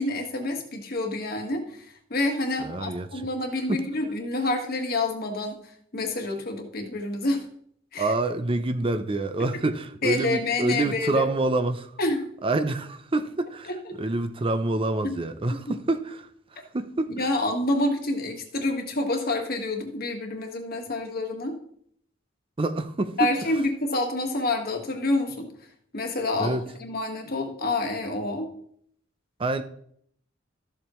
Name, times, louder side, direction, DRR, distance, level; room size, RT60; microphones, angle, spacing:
voice 1, 0.0-5.6 5.9-7.4 7.9-8.1 10.0-11.2 12.0-12.2 13.7-13.9 15.0-15.1 17.1-21.6 23.2-25.5 25.9-28.5, left 2 dB, 50° left, 1.6 m, -28 dB
voice 2, 2.6-3.2 3.7-3.9 8.0-11.9 12.4-17.3 22.6-23.2 26.4-26.6 29.4-29.6, right 2 dB, 30° right, 0.5 m, -27 dB
13.5 x 7.2 x 3.1 m
head